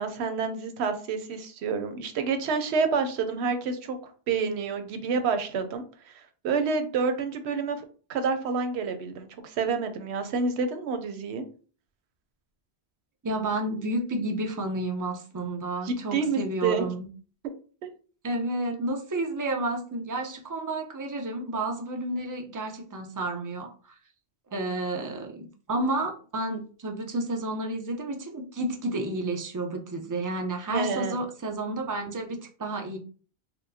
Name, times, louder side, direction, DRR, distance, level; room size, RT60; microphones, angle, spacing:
voice 1, 0.0-4.0 4.3-7.8 8.1-11.4 15.8-16.9 17.8-17.9 30.7-31.2, right 5 dB, 90° right, 7 dB, 0.9 m, -28 dB
voice 2, 13.2-17.1 18.2-23.9 24.5-33.0, right 2 dB, 25° right, 2 dB, 0.4 m, -31 dB
4.3 x 2.1 x 2.7 m, 0.40 s
omnidirectional pair, 1.1 m